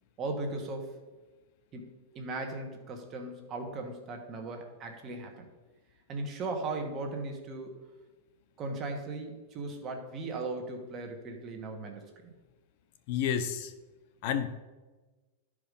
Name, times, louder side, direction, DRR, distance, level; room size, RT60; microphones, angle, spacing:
voice 1, 0.2-1.0 1.7-5.4 6.1-7.8 8.6-12.3, right 2 dB, 25° right, 3 dB, 1.5 m, -37 dB
voice 2, 13.1-13.7 14.2-14.5, left 8 dB, 50° left, 10 dB, 0.7 m, -30 dB
11.5 x 4.9 x 5.3 m, 1.2 s
supercardioid pair, 155°, 0 cm